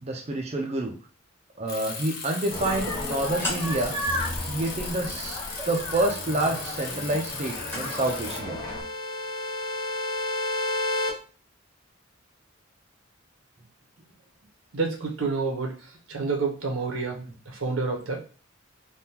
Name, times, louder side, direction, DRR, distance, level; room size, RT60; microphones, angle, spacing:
voice 1, 0.0-0.9 1.6-4.0 4.4-5.4 5.7-8.6 17.1-17.3, right 1 dB, 30° right, 1 dB, 0.4 m, -28 dB
Bicycle, 1.7-8.4, left 4 dB, 50° left, 0.8 m, -37 dB
sound 1, 2.5-8.8, left 1 dB, 10° left, 0.8 m, -33 dB
sound 2, 6.2-11.1, left 2 dB, 80° left, 1.0 m, -32 dB
voice 2, 14.7-15.7 16.1-17.2 17.5-18.2, right 4 dB, 80° right, 1 dB, 0.9 m, -28 dB
3.5 x 2.3 x 2.8 m, 0.39 s
head